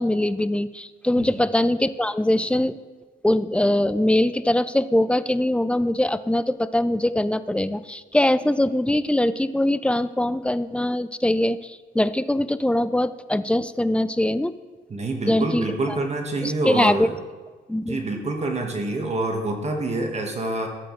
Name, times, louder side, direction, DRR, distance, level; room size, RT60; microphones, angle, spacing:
voice 1, 0.0-2.8 3.2-14.6 15.3-16.0 16.4-17.1 17.7-18.0, left 1 dB, 5° left, 14 dB, 0.4 m, -22 dB
voice 2, 14.9-17.1 17.9-20.7, right 2 dB, 35° right, 3 dB, 1.5 m, -26 dB
14.5 x 7.8 x 3.2 m, 1.3 s
cardioid pair, 90°, 20 cm